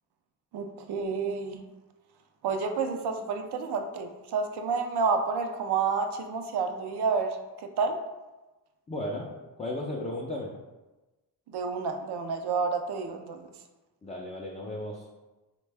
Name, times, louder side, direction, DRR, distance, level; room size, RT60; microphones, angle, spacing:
voice 1, 0.5-1.6 2.4-7.4 7.8-8.0 11.5-13.5, right 5 dB, 65° right, 6 dB, 0.5 m, -29 dB
voice 2, 8.9-9.3 9.6-10.5 14.0-15.1, left 1 dB, 20° left, -2 dB, 0.3 m, -35 dB
3.4 x 2.2 x 3.3 m, 1.1 s
cardioid pair, 85°, 43 cm